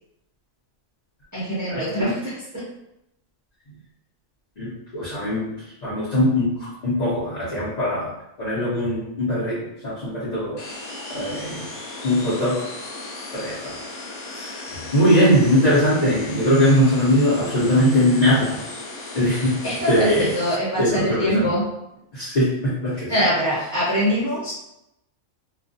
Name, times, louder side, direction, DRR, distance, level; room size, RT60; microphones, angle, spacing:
voice 1, 1.3-2.7 19.6-21.6 23.1-24.5, equal, 20° right, -10 dB, 0.5 m, -23 dB
voice 2, 4.6-5.5 5.8-8.1 8.4-9.6 9.8-10.6 11.1-11.7 12.0-12.6 13.3-13.7 14.3-18.6 19.1-20.3 20.8-21.5 22.1-23.1, equal, 40° left, -10 dB, 0.7 m, -21 dB
sound 1, 10.6-20.6, left 2 dB, 85° left, 1.0 m, -36 dB
2.4 x 2.3 x 2.6 m, 0.85 s
omnidirectional pair, 1.4 m